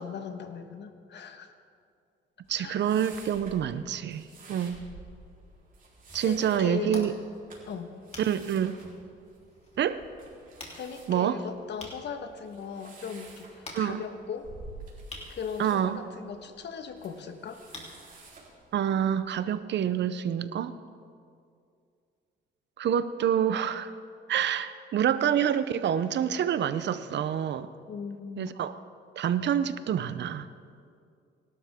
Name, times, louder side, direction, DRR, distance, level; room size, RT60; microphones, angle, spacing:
voice 1, 0.0-1.5 2.6-2.8 6.2-7.1 7.7-8.0 10.7-14.5 15.3-17.6 27.9-28.5, left 6 dB, 60° left, 7 dB, 1.4 m, -38 dB
sound 1, 2.4-19.4, right 3 dB, 45° right, 3.9 m, -51 dB
voice 2, 2.5-4.8 6.1-7.1 8.2-8.7 9.8-10.0 11.1-11.4 13.7-14.0 15.6-16.0 18.7-20.8 22.8-23.9 24.3-27.7 28.4-28.7 29.2-30.5, right 9 dB, 65° right, 13 dB, 0.7 m, -27 dB
sound 2, 5.9-19.2, left 2 dB, 30° left, 3.4 m, -50 dB
24.5 x 12.5 x 3.6 m, 2.3 s
cardioid pair, 90°, 20 cm